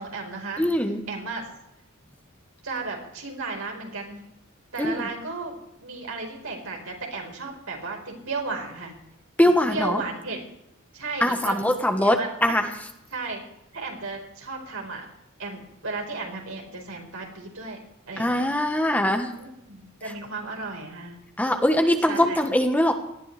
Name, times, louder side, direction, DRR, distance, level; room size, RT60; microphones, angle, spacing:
voice 1, 0.0-0.6 1.1-1.5 2.6-4.2 4.7-5.6 5.8-8.9 9.4-10.4 10.9-11.7 12.0-12.5 13.1-13.4 13.7-15.1 15.4-17.8 18.1-18.4 19.4-21.2 22.1-22.4, right 3 dB, 80° right, 1 dB, 4.6 m, -34 dB
voice 2, 0.6-1.0 4.8-5.0 9.4-10.0 11.2-12.6 18.2-19.3 21.4-22.9, left 1 dB, 10° left, 5 dB, 1.3 m, -22 dB
18.5 x 12.5 x 3.4 m, 0.84 s
head